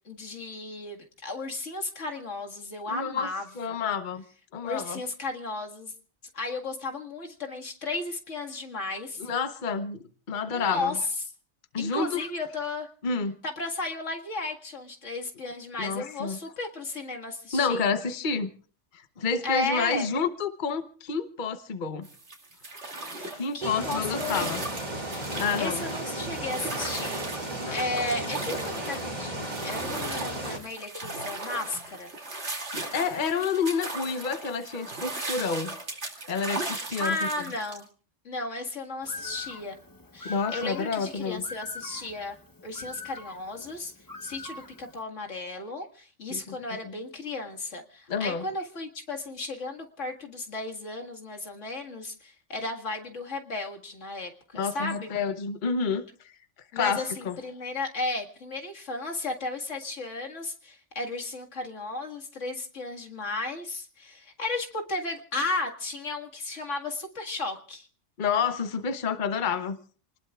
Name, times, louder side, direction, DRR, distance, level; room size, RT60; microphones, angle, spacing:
voice 1, 0.1-3.4 3.7-3.8 4.6-5.9 6.3-9.2 10.5-11.0 11.8-12.9 13.4-17.8 19.4-20.1 23.1-24.6 25.3-32.1 37.0-37.9 38.2-39.8 40.1-42.4 42.6-43.9 44.2-55.1 56.7-67.9, left 2 dB, 90° left, 2 dB, 2.3 m, -34 dB
voice 2, 2.9-4.2 4.5-5.0 9.2-11.0 11.7-12.3 13.0-13.4 15.8-16.4 17.5-18.5 18.9-22.1 23.3-24.6 25.3-25.8 27.7-27.8 32.7-35.8 36.3-37.3 40.2-41.4 46.3-46.6 46.8-46.9 48.1-48.5 54.5-56.3 56.7-57.4 68.2-69.8, left 5 dB, 45° left, 9 dB, 1.1 m, -29 dB
sound 1, 22.0-37.8, right 2 dB, 65° right, 2.9 m, -37 dB
sound 2, 23.6-30.6, right 1 dB, 35° right, 2.8 m, -35 dB
Bird, 39.0-45.0, left 4 dB, 20° left, 0.8 m, -43 dB
28.5 x 20.0 x 2.4 m, 0.41 s
omnidirectional pair, 1.2 m